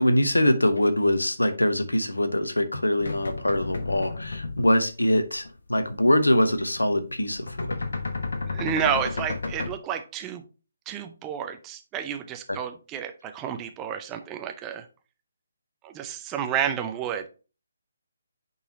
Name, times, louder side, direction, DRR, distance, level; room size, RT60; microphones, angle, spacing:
voice 1, 0.0-5.4 5.7-7.8 12.5-12.6, left 1 dB, 75° left, 0.9 m, -23 dB
sound 1, 3.0-4.9 5.2-5.5 5.8-6.0 6.3-9.7, left 3 dB, 55° left, 1.1 m, -32 dB
voice 2, 8.5-10.4 10.9-14.9 15.8-17.3, right 8 dB, 15° right, 0.5 m, -30 dB
8.8 x 4.0 x 2.8 m
figure-of-eight pair, 145°, 0 cm